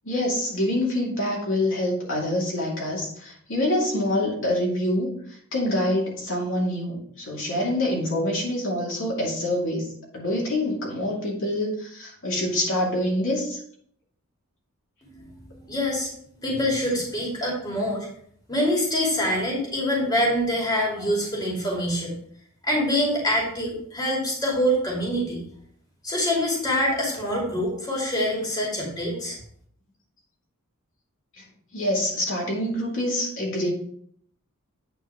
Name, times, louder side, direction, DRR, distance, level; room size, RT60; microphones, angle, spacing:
voice 1, 0.0-5.1 5.5-9.9 10.1-13.6 31.4-31.5 31.7-33.7, left 1 dB, 60° left, -3 dB, 2.5 m, -26 dB
voice 2, 15.0-18.1 18.5-22.2 22.6-25.4 26.0-29.4, equal, 20° left, -3 dB, 2.5 m, -25 dB
9.0 x 4.6 x 4.6 m, 0.63 s
head